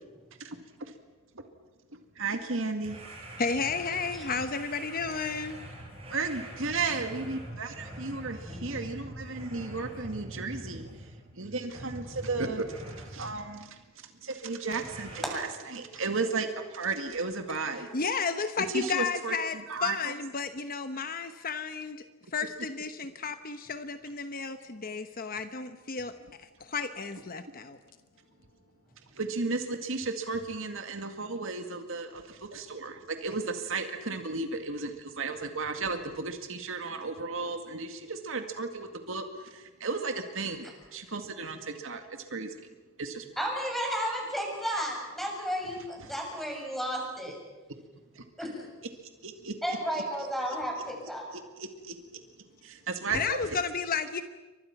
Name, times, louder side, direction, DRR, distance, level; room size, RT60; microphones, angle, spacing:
voice 1, 0.4-0.9 1.4-1.5 1.9-3.0 6.1-17.9 18.7-20.1 29.1-42.6 43.0-43.5 46.0-46.1 48.2-48.3 49.2-50.0 50.5-50.6 51.3-52.0 52.6-53.6, right 4 dB, 70° right, 6 dB, 2.1 m, -34 dB
sound 1, 2.8-11.3 11.7-13.5 14.8-15.3, right 1 dB, 30° right, 6.1 m, -44 dB
voice 2, 3.4-5.6 17.9-22.0 22.3-27.8 53.1-54.2, left 5 dB, 45° left, 9 dB, 1.0 m, -32 dB
voice 3, 43.4-47.4 48.4-48.7 49.6-51.3, equal, ahead, 0 dB, 7.2 m, -33 dB
29.5 x 24.5 x 6.0 m, 1.2 s
head